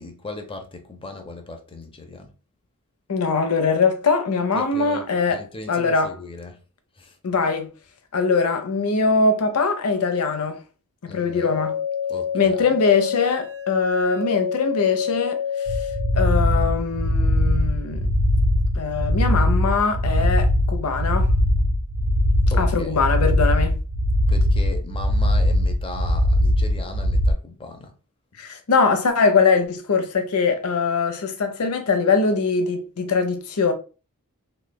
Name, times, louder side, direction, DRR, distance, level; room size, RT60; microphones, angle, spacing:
voice 1, 0.0-2.3 4.5-6.6 7.0-7.1 11.1-11.6 12.1-12.7 22.5-23.0 24.3-27.9, left 3 dB, 25° left, 0.5 m, -37 dB
voice 2, 3.1-5.4 5.7-6.1 7.2-7.7 8.1-10.6 11.0-11.7 12.3-15.4 16.1-18.0 18.8-21.3 22.6-23.7 28.4-33.7, left 4 dB, 80° left, 0.7 m, -22 dB
sound 1, 11.2-16.2, left 8 dB, 40° right, 0.7 m, -28 dB
sound 2, 15.7-27.3, left 1 dB, 85° right, 0.6 m, -20 dB
3.2 x 3.1 x 2.2 m
head